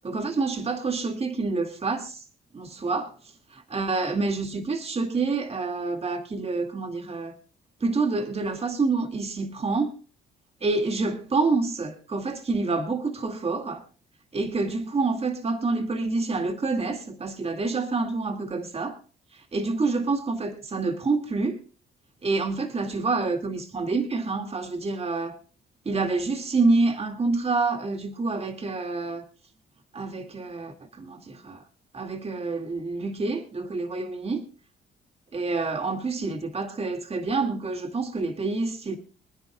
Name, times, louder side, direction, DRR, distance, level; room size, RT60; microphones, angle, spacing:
voice 1, 0.0-2.2 2.5-3.1 3.5-7.3 7.8-9.9 10.6-13.8 14.3-19.0 19.3-21.6 22.2-25.4 25.9-29.2 29.9-31.6 31.9-34.4 35.3-39.0, right 3 dB, 30° right, 2.3 m, -27 dB
26.5 x 10.0 x 2.4 m
cardioid pair, 90°, 20 cm